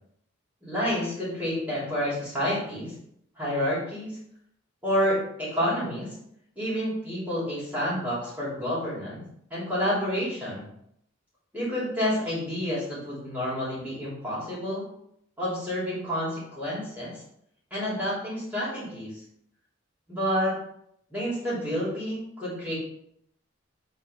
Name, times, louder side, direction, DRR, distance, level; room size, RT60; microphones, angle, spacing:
voice 1, 0.6-2.9 3.4-4.2 4.8-6.1 6.5-9.2 9.5-10.7 11.5-14.8 15.4-17.2 17.7-19.2 20.1-20.5 21.1-22.7, equal, 10° right, -9 dB, 3.0 m, -29 dB
8.3 x 3.4 x 4.9 m, 0.72 s
head